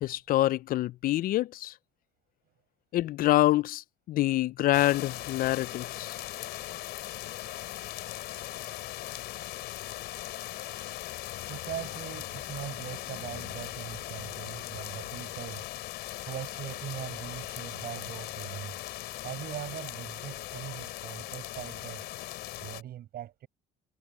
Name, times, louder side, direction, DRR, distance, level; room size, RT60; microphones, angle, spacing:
voice 1, 0.0-1.7 2.9-6.2, left 15 dB, 60° left, 0.4 m, -26 dB
sound 1, 4.7-22.8, left 15 dB, 80° left, 3.6 m, -39 dB
voice 2, 11.2-15.7 16.3-18.8 19.2-22.1 22.6-23.5, right 12 dB, 65° right, 7.2 m, -41 dB
cardioid pair, 110°, 17 cm